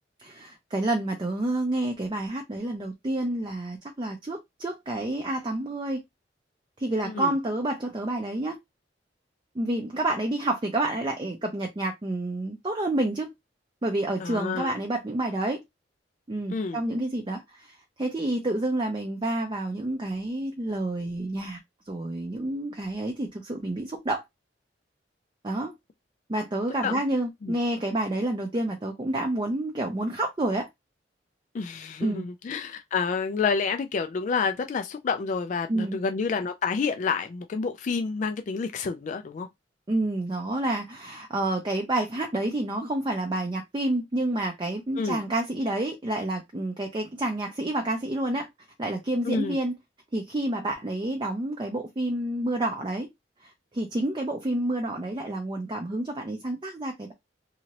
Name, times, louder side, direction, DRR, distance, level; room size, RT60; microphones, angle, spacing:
voice 1, 0.2-6.0 6.8-8.6 9.5-13.3 13.8-15.6 16.3-21.6 21.9-24.2 25.4-25.7 26.3-30.7 32.0-32.2 35.7-36.0 39.9-48.5 48.8-49.8 50.1-53.1 53.4-57.1, right 1 dB, 25° right, 0.5 m, -29 dB
voice 2, 14.2-14.7 16.5-16.8 26.8-27.0 27.4-27.5 31.5-39.5 45.0-45.2 49.3-49.6, left 5 dB, 45° left, 0.3 m, -29 dB
2.8 x 2.6 x 2.9 m
head